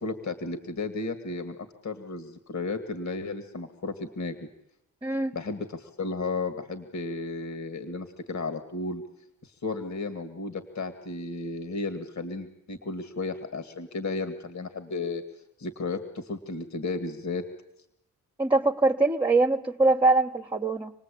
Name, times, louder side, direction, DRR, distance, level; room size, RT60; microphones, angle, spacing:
voice 1, 0.0-1.6 1.8-4.3 5.3-9.0 9.4-15.2 15.6-17.4, left 3 dB, 55° left, 8 dB, 2.3 m, -33 dB
voice 2, 5.0-5.4 18.4-20.9, right 3 dB, 15° right, 1 dB, 1.3 m, -23 dB
27.5 x 19.0 x 8.6 m, 0.81 s
cardioid pair, 75°, 33 cm